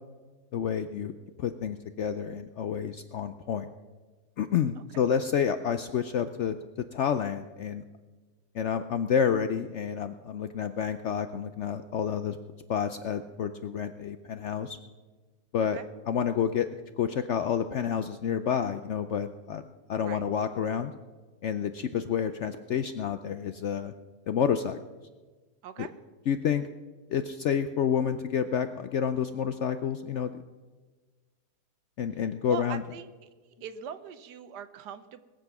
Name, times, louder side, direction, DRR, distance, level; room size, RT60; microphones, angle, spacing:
voice 1, 0.5-1.1 1.4-3.7 4.4-7.8 8.5-12.4 12.7-14.8 15.5-15.8 16.1-16.7 17.0-19.6 19.9-20.9 21.4-23.9 24.3-24.8 25.8-25.9 26.3-26.7 27.1-30.3 32.0-32.8, left 8 dB, 70° left, 10 dB, 0.6 m, -29 dB
voice 2, 32.5-35.2, right 9 dB, 90° right, 12 dB, 1.4 m, -41 dB
20.0 x 7.7 x 6.0 m, 1.3 s
omnidirectional pair, 1.7 m